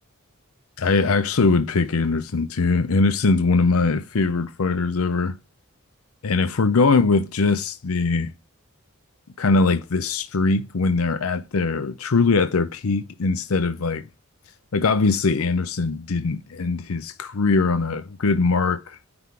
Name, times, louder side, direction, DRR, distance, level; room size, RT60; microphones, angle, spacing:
voice 1, 0.8-5.3 6.2-8.3 9.4-14.1 14.7-19.0, left 3 dB, 80° left, 0.6 m, -21 dB
9.8 x 3.7 x 4.7 m
head